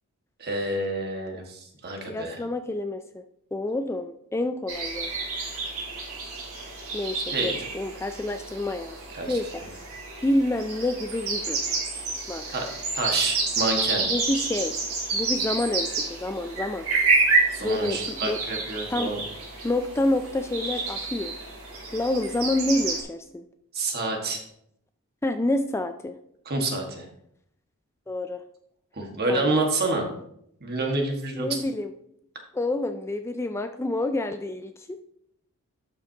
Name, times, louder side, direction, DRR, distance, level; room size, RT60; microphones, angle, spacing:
voice 1, 0.4-2.4 7.3-7.7 9.1-9.4 12.5-12.7 12.9-14.1 17.6-19.2 23.7-24.4 26.5-27.1 28.9-30.1 30.6-31.5, right 2 dB, 45° right, 2 dB, 1.6 m, -28 dB
voice 2, 2.1-3.2 3.5-5.1 6.9-9.0 9.3-9.6 10.2-11.8 12.3-12.5 14.1-16.9 17.6-18.4 18.9-19.1 19.6-21.3 21.9-23.5 25.2-26.2 28.1-28.4 29.3-29.5 31.4-31.9 32.5-35.0, left 1 dB, 10° left, 8 dB, 0.3 m, -28 dB
sound 1, 4.7-23.0, right 3 dB, 65° right, 2.9 m, -29 dB
12.0 x 5.9 x 2.8 m, 0.72 s
head